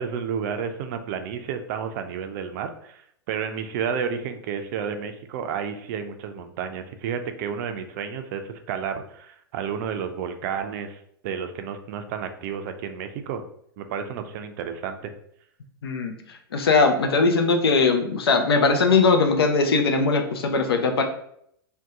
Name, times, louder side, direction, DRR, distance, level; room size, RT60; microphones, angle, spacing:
voice 1, 0.0-13.4 13.8-15.1, right 7 dB, 50° right, 8 dB, 0.4 m, -31 dB
voice 2, 15.8-16.2 16.5-21.0, left 4 dB, 80° left, 5 dB, 0.5 m, -20 dB
2.7 x 2.2 x 3.5 m, 0.70 s
hypercardioid pair, 105°, 13 cm